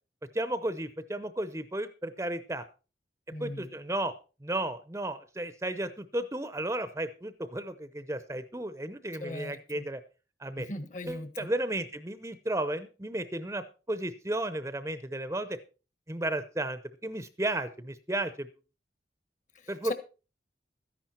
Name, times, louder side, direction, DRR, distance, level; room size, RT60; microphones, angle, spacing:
voice 1, 0.3-2.6 3.4-10.0 10.4-10.7 11.1-15.6 16.1-18.5 19.7-19.9, right 1 dB, 15° right, 0.7 m, -34 dB
voice 2, 3.3-3.7 9.2-9.9 10.6-11.5 19.5-19.9, left 2 dB, 45° left, 1.4 m, -39 dB
13.5 x 10.5 x 4.4 m
head